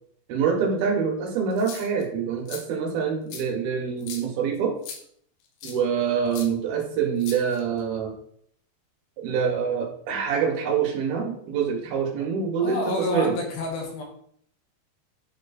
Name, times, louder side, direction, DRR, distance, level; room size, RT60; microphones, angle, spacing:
voice 1, 0.3-4.7 5.6-8.1 9.2-12.8 13.1-13.3, right 6 dB, 70° right, 1 dB, 2.6 m, -25 dB
sound 1, 1.5-2.0 2.5-2.6 3.3-3.4 4.0-4.3 4.8-5.0 5.6-5.8 6.3-6.5 7.2-7.8, left 7 dB, 90° left, 3.4 m, -39 dB
voice 2, 12.6-14.0, left 2 dB, 70° left, 0 dB, 2.6 m, -29 dB
9.1 x 3.1 x 4.1 m, 0.65 s
omnidirectional pair, 5.2 m